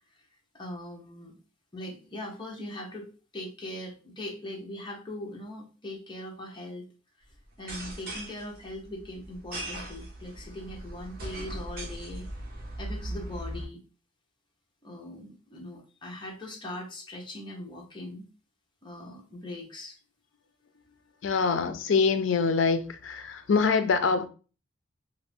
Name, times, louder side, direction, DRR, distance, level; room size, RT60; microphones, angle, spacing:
voice 1, 0.5-1.3 1.7-6.8 7.6-12.3 12.8-13.8 14.8-18.3 18.8-20.0, left 1 dB, 25° left, 0.8 m, -40 dB
sound 1, 7.5-13.7, right 1 dB, 50° right, 1.0 m, -39 dB
voice 2, 21.2-24.3, left 5 dB, 70° left, 0.4 m, -24 dB
2.6 x 2.5 x 3.4 m
head